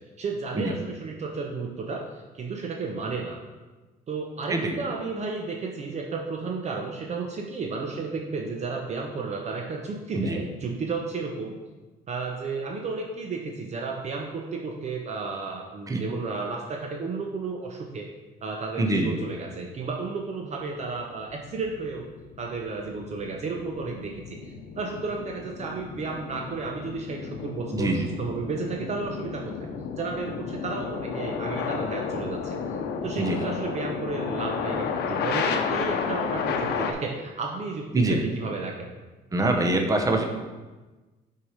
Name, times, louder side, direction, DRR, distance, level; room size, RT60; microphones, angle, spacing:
voice 1, 0.2-3.4 4.1-11.6 12.1-18.1 18.4-22.1 22.4-29.7 30.0-32.6 33.0-38.9, right 4 dB, 40° right, 1 dB, 0.8 m, -33 dB
voice 2, 18.8-19.1 27.7-28.1 33.2-33.4 37.9-38.2 39.3-40.2, right 2 dB, 20° right, 3 dB, 0.9 m, -24 dB
sound 1, 20.8-36.9, left 6 dB, 80° left, 0.8 m, -32 dB
6.1 x 4.8 x 5.0 m, 1.2 s
cardioid pair, 110°, 17 cm